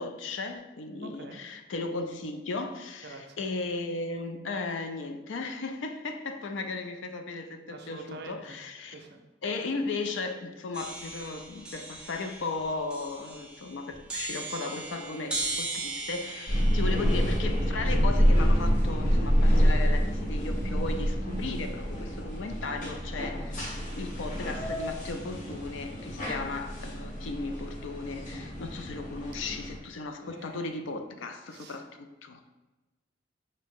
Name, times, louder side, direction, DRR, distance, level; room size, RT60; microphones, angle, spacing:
voice 1, 0.0-9.0 9.4-32.4, left 3 dB, 75° left, 7 dB, 0.4 m, -36 dB
voice 2, 1.0-1.4 3.0-3.5 7.7-8.6 8.9-9.2 16.5-16.7 30.2-30.8 31.5-31.9, right 2 dB, 60° right, 4 dB, 0.5 m, -46 dB
sound 1, 10.7-18.7, right 3 dB, 5° right, 0.6 m, -38 dB
sound 2, 16.5-29.8, equal, 40° left, 0.8 m, -27 dB
5.0 x 2.7 x 3.6 m, 1.1 s
head